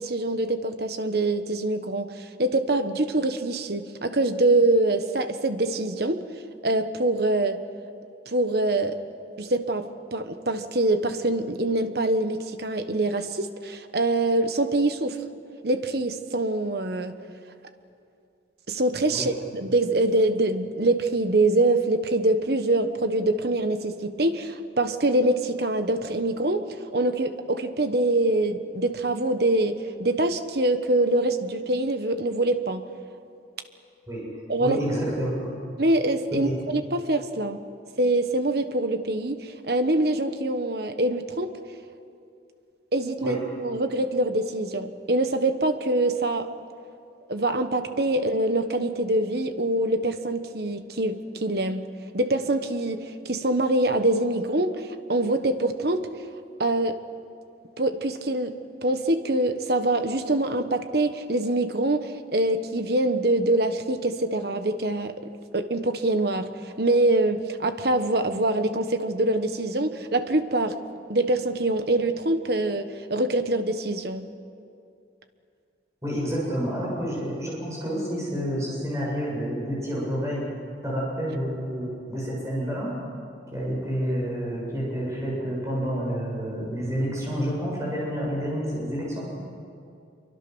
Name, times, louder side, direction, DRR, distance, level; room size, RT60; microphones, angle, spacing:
voice 1, 0.0-6.2 6.6-7.6 8.3-9.0 9.4-15.2 15.6-17.2 18.7-26.7 26.9-32.8 34.5-34.8 35.8-37.6 38.0-41.5 42.9-46.5 47.3-51.9 52.1-56.1 56.6-57.0 57.8-65.1 65.5-70.8 71.1-74.3, right 2 dB, 55° right, 9 dB, 1.3 m, -24 dB
voice 2, 34.6-35.3 36.3-36.5 43.2-43.4 76.0-80.4 80.8-82.9 83.5-89.2, equal, 15° right, -5 dB, 7.6 m, -29 dB
26.0 x 24.0 x 6.3 m, 2.5 s
head